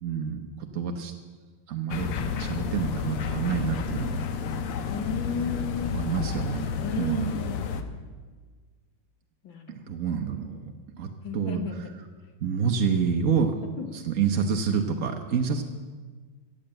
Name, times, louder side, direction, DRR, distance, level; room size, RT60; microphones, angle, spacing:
voice 1, 0.0-1.1 1.7-4.2 5.9-6.7 7.0-7.4 9.9-11.6 12.4-13.6 13.9-15.6, right 6 dB, 60° right, 4 dB, 0.8 m, -28 dB
sound 1, 1.9-7.8, left 6 dB, 80° left, 1.8 m, -31 dB
voice 2, 4.9-6.1 6.8-7.8 9.4-9.8 11.2-11.9 13.8-14.0, left 5 dB, 65° left, 5 dB, 2.0 m, -34 dB
14.5 x 7.8 x 8.9 m, 1.4 s
omnidirectional pair, 2.4 m